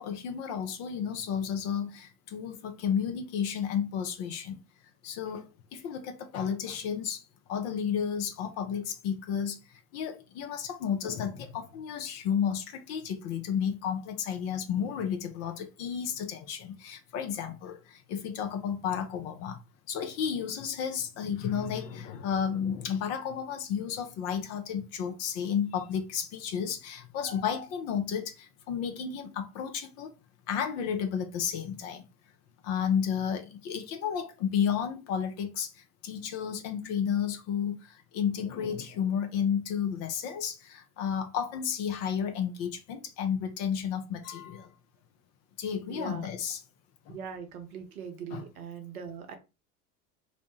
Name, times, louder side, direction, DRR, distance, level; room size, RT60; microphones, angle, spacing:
voice 1, 0.0-4.6 5.0-5.5 5.7-7.2 7.5-19.6 19.9-30.1 30.5-32.1 32.6-44.7 45.6-46.6 47.1-47.2 48.3-48.4, left 8 dB, 35° left, 0.5 m, -32 dB
voice 2, 45.9-46.3 47.1-49.4, right 6 dB, 70° right, 0.8 m, -41 dB
2.7 x 2.1 x 3.0 m
figure-of-eight pair, 80°, 46 cm